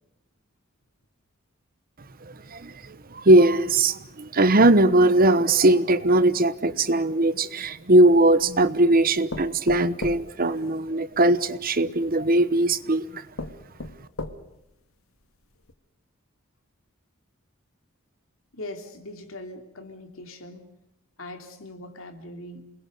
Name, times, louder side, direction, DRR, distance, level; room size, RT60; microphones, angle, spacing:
voice 1, 2.3-13.2, right 1 dB, 45° right, 14 dB, 1.1 m, -20 dB
sound 1, 7.6-8.5 9.3-11.3 12.2-12.3 12.9-13.0 13.4-14.7 15.2-15.3 15.6-15.7, left 2 dB, 90° left, 1.9 m, -37 dB
voice 2, 18.5-20.6 21.2-22.7, left 1 dB, 70° left, 5 dB, 3.2 m, -40 dB
28.5 x 20.5 x 6.7 m, 0.90 s
head